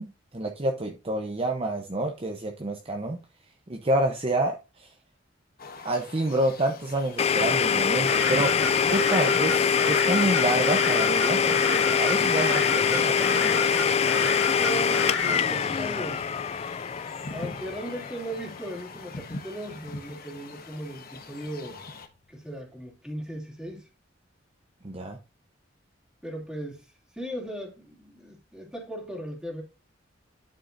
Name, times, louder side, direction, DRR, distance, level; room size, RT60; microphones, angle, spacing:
voice 1, 0.0-3.2 3.7-4.9 5.8-8.6 8.9-13.7 14.1-14.3 24.8-25.2, right 1 dB, 30° right, 0.9 m, -28 dB
sound 1, 5.6-22.1, left 3 dB, 50° left, 1.3 m, -42 dB
Domestic sounds home sounds, 7.2-18.8, left 7 dB, 35° left, 0.4 m, -24 dB
sound 2, 8.1-15.4, left 3 dB, 65° left, 2.0 m, -31 dB
voice 2, 14.2-16.4 17.3-21.8 22.3-23.9 26.2-26.9 27.1-29.6, right 1 dB, 5° right, 2.7 m, -37 dB
11.5 x 6.6 x 2.7 m
head